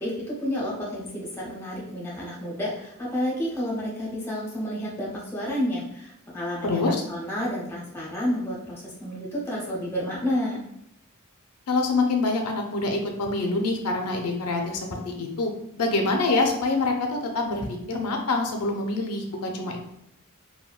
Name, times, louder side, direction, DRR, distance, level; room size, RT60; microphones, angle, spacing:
voice 1, 0.0-10.6, equal, 10° left, -5 dB, 0.7 m, -30 dB
voice 2, 6.6-7.0 11.7-15.5 15.8-19.8, left 3 dB, 85° left, 2 dB, 0.5 m, -25 dB
3.4 x 2.2 x 2.3 m, 0.79 s
head